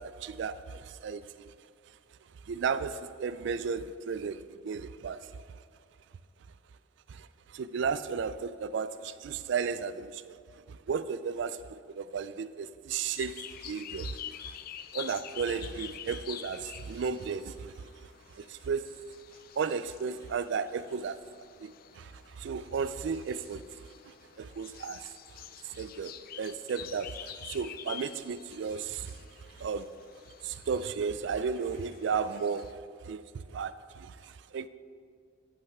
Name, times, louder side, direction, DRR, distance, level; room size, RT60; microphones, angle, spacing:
voice 1, 0.0-1.5 2.5-5.6 7.1-10.4 10.7-14.6 14.9-18.9 19.6-21.2 21.6-23.6 24.1-25.1 25.6-29.2 29.5-29.9 30.4-34.7, right 6 dB, 65° right, 0.3 m, -34 dB
sound 1, 13.0-32.7, left 10 dB, 50° left, 0.3 m, -48 dB
14.0 x 5.5 x 3.5 m
head